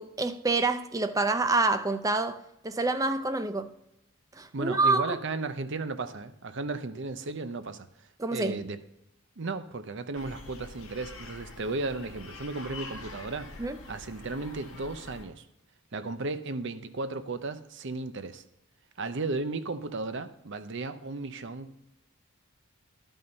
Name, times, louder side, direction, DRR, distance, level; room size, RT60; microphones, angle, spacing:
voice 1, 0.0-2.4 2.6-3.7 4.4-5.2 8.2-8.6 13.6-13.8, right 3 dB, 15° right, 0.4 m, -27 dB
voice 2, 4.5-8.8 9.4-13.5 13.9-15.5 15.9-18.4 19.0-21.9, right 3 dB, 55° right, 0.6 m, -35 dB
sound 1, 10.1-15.2, left 3 dB, 70° left, 1.8 m, -45 dB
11.5 x 5.6 x 5.2 m
head